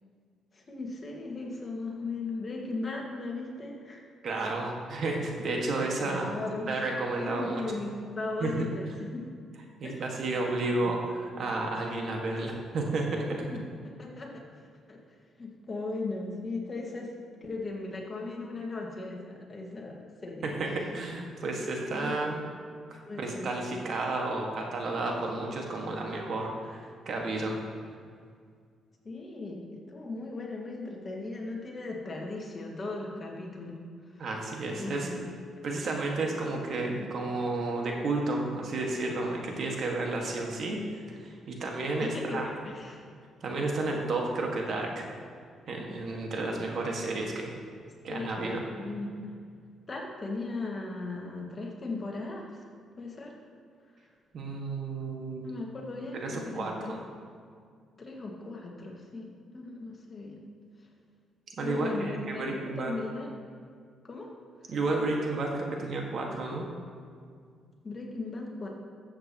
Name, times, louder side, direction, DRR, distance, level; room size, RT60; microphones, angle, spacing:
voice 1, 0.5-4.0 6.0-6.8 7.2-7.9 8.1-9.2 9.8-10.2 10.8-10.9 13.3-15.0 15.4-17.1 17.4-20.5 21.9-22.4 23.1-23.6 29.0-34.3 34.8-35.3 42.0-43.0 48.0-49.3 49.9-52.6 53.0-53.4 55.4-57.0 58.0-60.5 61.6-63.3 64.0-64.3 67.8-68.7, left 3 dB, 35° left, 0 dB, 1.7 m, -37 dB
voice 2, 4.2-6.3 6.7-7.6 8.4-8.6 9.8-13.3 20.4-22.4 22.9-27.6 34.2-35.1 35.6-42.5 43.4-45.1 45.7-47.5 48.0-48.6 54.3-55.4 56.2-57.0 61.6-62.9 64.7-66.7, right 2 dB, 60° right, 0 dB, 1.6 m, -32 dB
13.0 x 7.8 x 3.0 m, 2.1 s
cardioid pair, 90°, 0 cm